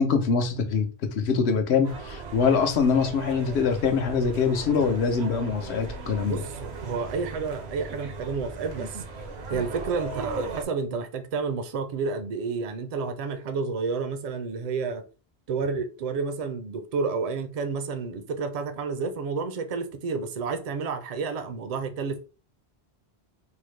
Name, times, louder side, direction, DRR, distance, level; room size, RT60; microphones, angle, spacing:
voice 1, 0.0-6.4 9.5-9.6, left 5 dB, 80° left, 0.9 m, -24 dB
sound 1, 1.8-10.6, right 3 dB, 75° right, 1.0 m, -37 dB
voice 2, 6.2-9.0 9.5-15.0 15.5-22.2, right 5 dB, 50° right, 0.5 m, -30 dB
3.6 x 2.0 x 3.1 m
omnidirectional pair, 1.1 m